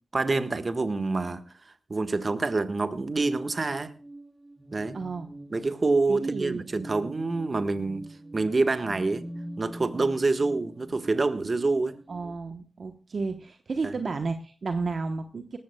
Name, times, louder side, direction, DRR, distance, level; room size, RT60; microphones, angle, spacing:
voice 1, 0.1-1.4 1.9-3.9 4.7-5.0 5.5-8.0 8.3-9.2 9.6-11.9 13.8-14.0, right 3 dB, 45° right, 11 dB, 1.5 m, -26 dB
sound 1, 2.9-12.4, right 1 dB, 20° right, 1.3 m, -44 dB
voice 2, 4.9-5.3 6.1-6.6 12.1-15.6, right 4 dB, 60° right, 7 dB, 1.0 m, -32 dB
19.0 x 14.5 x 2.3 m, 0.36 s
cardioid pair, 45°, 0 cm